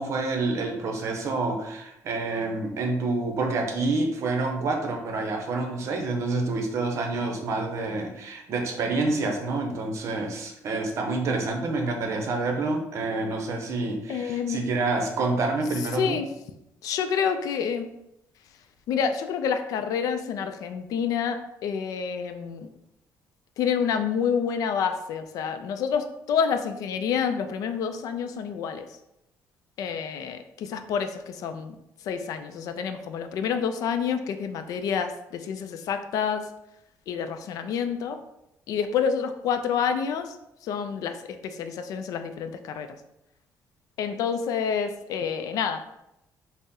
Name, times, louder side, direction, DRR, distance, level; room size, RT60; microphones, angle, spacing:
voice 1, 0.0-16.2, right 3 dB, 50° right, 2 dB, 0.7 m, -28 dB
voice 2, 14.1-14.6 16.0-16.3 16.8-17.9 18.9-22.7 23.6-28.8 29.8-31.7 32.1-36.4 37.1-38.2 38.7-40.3 40.7-41.1 41.4-42.9 44.0-45.8, left 7 dB, 70° left, 8 dB, 0.4 m, -28 dB
4.1 x 2.0 x 3.6 m, 0.84 s
cardioid pair, 150°, 6 cm